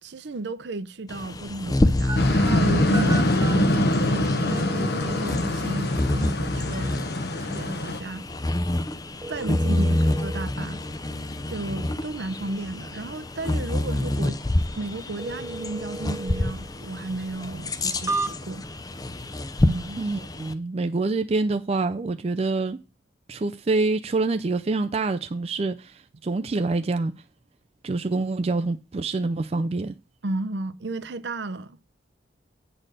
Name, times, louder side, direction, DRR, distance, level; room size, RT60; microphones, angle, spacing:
voice 1, 0.0-6.9 7.4-8.2 9.3-10.8 11.5-14.4 14.7-18.7 19.6-20.0 30.2-31.8, right 2 dB, 70° right, 0.7 m, -34 dB
Bird vocalization bird call bird song, 1.1-20.5, left 1 dB, 20° left, 0.5 m, -28 dB
sound 1, 2.1-18.8, right 3 dB, 15° right, 0.8 m, -38 dB
sound 2, 2.2-8.0, left 1 dB, 55° left, 0.9 m, -24 dB
voice 2, 20.0-22.8 23.3-27.1 27.8-29.9, right 3 dB, 35° right, 0.4 m, -26 dB
8.8 x 4.1 x 6.5 m
head